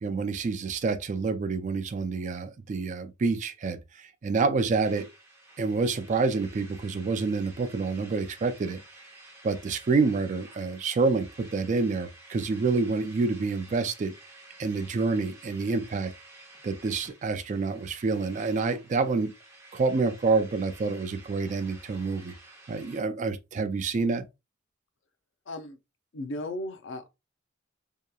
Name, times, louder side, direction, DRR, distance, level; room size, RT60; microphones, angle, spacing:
voice 1, 0.0-5.1 5.6-8.8 9.4-14.1 14.6-16.1 16.6-19.3 19.7-22.3 22.7-24.3, right 4 dB, 40° right, 0.3 m, -28 dB
sound 1, 4.8-23.0, right 1 dB, 15° right, 0.7 m, -52 dB
voice 2, 25.5-25.8 26.1-27.1, left 1 dB, 70° left, 0.5 m, -35 dB
2.8 x 2.3 x 2.2 m
head